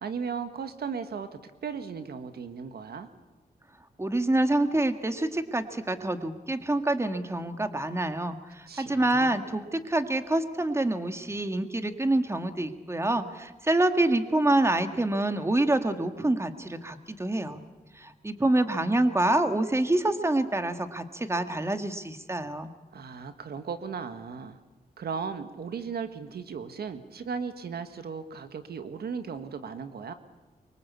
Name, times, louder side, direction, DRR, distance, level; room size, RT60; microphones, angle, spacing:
voice 1, 0.0-3.1 8.7-9.4 22.9-24.6 25.0-30.1, right 6 dB, 85° right, 9 dB, 1.6 m, -36 dB
voice 2, 4.0-17.6 18.0-22.7, right 1 dB, 15° right, 8 dB, 1.9 m, -26 dB
24.0 x 24.0 x 8.4 m, 1.1 s
cardioid pair, 90°, 16 cm